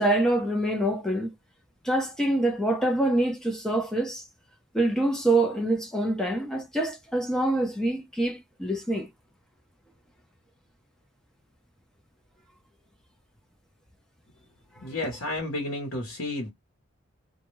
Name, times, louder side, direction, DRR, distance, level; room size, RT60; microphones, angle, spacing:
voice 1, 0.0-1.3 1.8-4.2 4.7-9.1, right 1 dB, 5° left, 0.6 m, -25 dB
voice 2, 14.8-16.5, left 2 dB, 75° left, 0.9 m, -31 dB
2.2 x 2.1 x 3.0 m
head